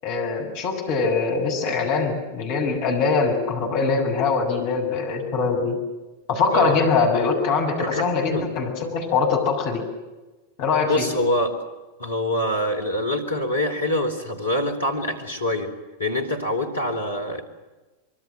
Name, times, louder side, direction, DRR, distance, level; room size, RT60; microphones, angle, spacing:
voice 1, 0.0-5.8 6.3-9.8 10.6-11.1, left 4 dB, 45° left, 2 dB, 7.4 m, -23 dB
voice 2, 7.8-8.5 10.8-11.6 12.0-15.7 16.0-17.4, left 1 dB, 75° left, 5 dB, 3.9 m, -25 dB
26.0 x 23.5 x 7.7 m, 1.2 s
figure-of-eight pair, 90°, 0 cm